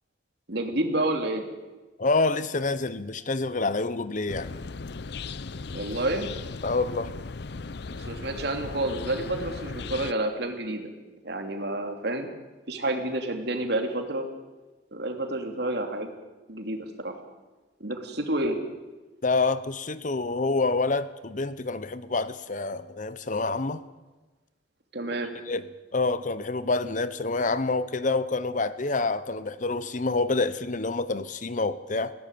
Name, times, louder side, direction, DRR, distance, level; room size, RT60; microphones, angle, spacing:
voice 1, 0.5-1.4 5.7-6.3 8.0-10.9 11.2-12.3 12.7-14.3 14.9-16.1 16.5-17.2 17.8-18.6 24.9-25.3, right 1 dB, 65° right, 5 dB, 3.0 m, -29 dB
voice 2, 2.0-4.5 6.6-7.1 19.2-23.8 25.5-25.6 25.9-32.1, left 3 dB, 45° left, 14 dB, 0.9 m, -27 dB
sound 1, 4.3-10.1, left 4 dB, 65° left, 0.7 m, -37 dB
19.5 x 17.0 x 9.4 m, 1.2 s
head